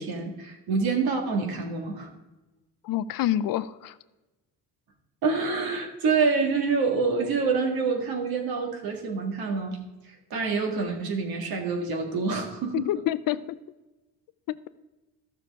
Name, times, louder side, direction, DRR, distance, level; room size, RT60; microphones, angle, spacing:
voice 1, 0.0-2.1 5.2-9.8 10.0-12.9, right 4 dB, 65° right, 2 dB, 2.0 m, -27 dB
voice 2, 2.8-4.0 12.7-13.6 14.5-14.6, left 12 dB, 60° left, 15 dB, 0.5 m, -27 dB
13.0 x 6.8 x 3.6 m, 1.1 s
cardioid pair, 130°, 39 cm